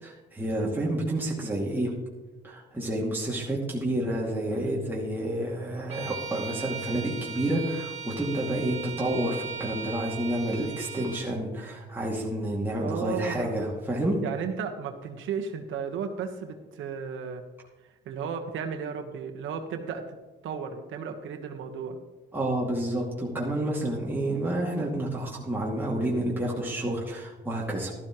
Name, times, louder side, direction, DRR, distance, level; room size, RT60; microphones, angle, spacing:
voice 1, 0.0-1.9 2.4-14.2 22.3-27.9, right 1 dB, 10° right, -4 dB, 2.5 m, -29 dB
Bowed string instrument, 5.9-11.3, right 6 dB, 35° right, 3.2 m, -38 dB
voice 2, 12.8-13.7 14.2-17.4 18.0-20.2 20.4-22.0, right 6 dB, 80° right, 5 dB, 1.4 m, -34 dB
13.0 x 12.0 x 3.1 m, 1.2 s
cardioid pair, 90°, 20 cm